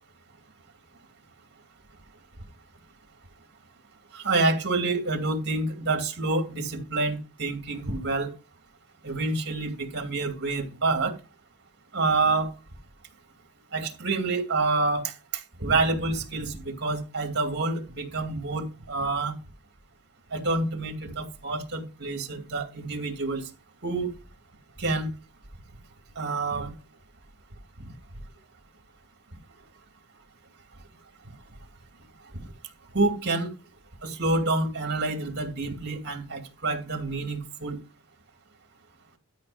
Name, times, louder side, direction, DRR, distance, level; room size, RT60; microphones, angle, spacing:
voice 1, 4.1-8.3 9.0-11.2 11.9-12.5 13.7-15.1 15.6-19.3 20.3-23.4 23.8-24.1 24.8-25.1 26.2-26.7 32.9-33.5 34.0-37.8, right 3 dB, 50° right, 2.6 m, -27 dB
12.5 x 5.2 x 5.0 m
head